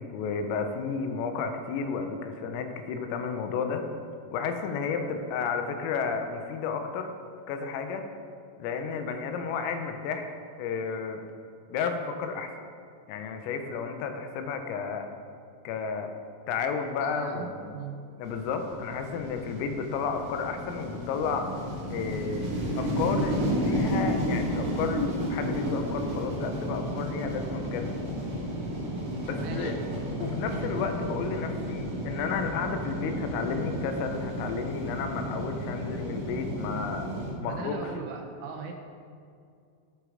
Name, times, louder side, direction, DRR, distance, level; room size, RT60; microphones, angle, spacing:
voice 1, 0.0-3.8 4.3-7.1 7.5-8.0 8.6-10.3 10.6-11.2 11.7-12.5 13.1-15.1 15.6-16.1 16.5-17.8 18.2-21.5 21.9-22.5 22.8-27.9 29.2-29.7 30.2-37.1 37.4-37.9, left 5 dB, 80° left, 6 dB, 3.5 m, -32 dB
voice 2, 17.0-17.5 17.7-18.0 29.4-29.8 37.4-38.7, right 5 dB, 80° right, 3 dB, 3.0 m, -38 dB
sound 1, 18.2-37.3, equal, 30° right, 1.7 m, -32 dB
14.5 x 6.7 x 5.0 m, 2.4 s
omnidirectional pair, 6.0 m